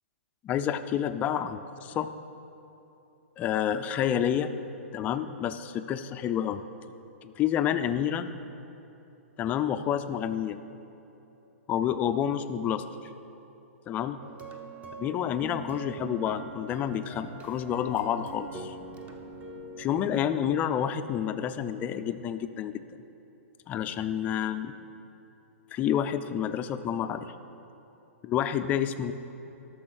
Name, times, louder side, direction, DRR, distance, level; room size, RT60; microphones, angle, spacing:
voice 1, 0.4-2.1 3.4-4.5 4.9-6.6 7.2-8.3 9.4-10.6 11.7-12.8 13.9-14.2 14.9-18.8 19.8-22.8 23.7-24.7 25.7-27.3 28.2-29.1, left 9 dB, 20° left, 10 dB, 0.4 m, -29 dB
sound 1, 14.2-20.0, right 4 dB, 15° right, 0.7 m, -43 dB
12.5 x 6.2 x 6.3 m, 3.0 s
hypercardioid pair, 145°, 8 cm